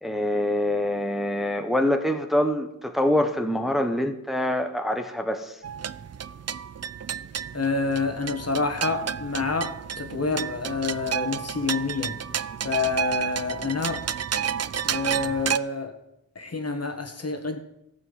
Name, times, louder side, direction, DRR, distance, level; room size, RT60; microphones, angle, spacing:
voice 1, 0.0-5.6, left 1 dB, ahead, 1.3 m, -25 dB
sound 1, 5.6-15.6, right 8 dB, 50° right, 0.5 m, -31 dB
voice 2, 7.5-12.2 12.6-14.1 14.8-16.0 16.4-17.6, left 4 dB, 50° left, 1.8 m, -28 dB
13.5 x 6.1 x 9.4 m
wide cardioid pair, 60°, 33 cm